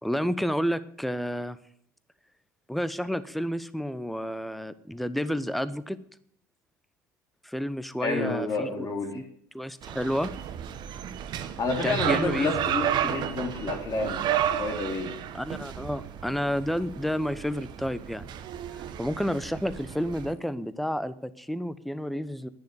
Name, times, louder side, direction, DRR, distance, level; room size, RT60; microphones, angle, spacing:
voice 1, 0.0-1.6 2.7-6.0 7.4-8.9 9.1-9.2 9.5-10.3 11.8-12.6 15.3-18.3 19.0-22.5, equal, ahead, 15 dB, 0.9 m, -30 dB
voice 2, 8.0-9.2 11.6-14.3 14.6-15.2, left 3 dB, 35° left, 2 dB, 3.4 m, -30 dB
sound 1, 9.8-20.3, right 10 dB, 50° right, 1.1 m, -32 dB
10.5 x 9.9 x 8.3 m, 0.65 s
figure-of-eight pair, 65°, 10 cm